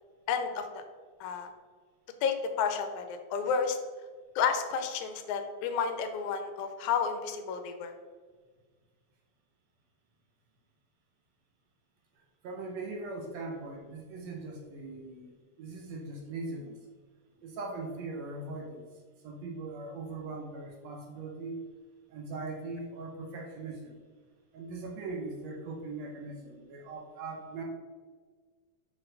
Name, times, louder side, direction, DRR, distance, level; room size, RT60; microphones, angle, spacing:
voice 1, 0.3-0.8 1.2-1.5 2.2-3.8 4.4-7.9, left 6 dB, 80° left, 7 dB, 1.9 m, -31 dB
voice 2, 12.4-15.3 15.6-16.8 17.4-18.9 19.2-21.6 22.1-24.0 24.5-27.6, right 3 dB, 70° right, 1 dB, 1.7 m, -40 dB
6.1 x 4.4 x 3.8 m, 1.5 s
omnidirectional pair, 3.5 m